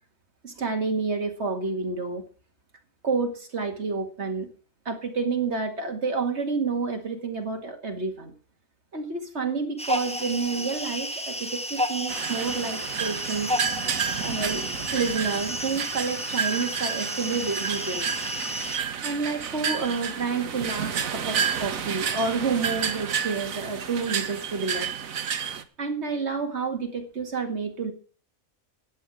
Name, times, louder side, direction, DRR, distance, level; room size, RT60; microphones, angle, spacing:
voice 1, 0.4-2.2 3.0-4.5 4.9-8.3 8.9-13.5 14.2-14.6 14.9-18.1 19.0-24.9 25.8-27.9, right 4 dB, 55° right, 4 dB, 2.3 m, -29 dB
sound 1, 9.8-18.8, equal, 5° left, 1.1 m, -32 dB
sound 2, 12.1-25.6, right 7 dB, 80° right, 1.5 m, -30 dB
12.0 x 8.7 x 6.3 m, 0.39 s
omnidirectional pair, 1.4 m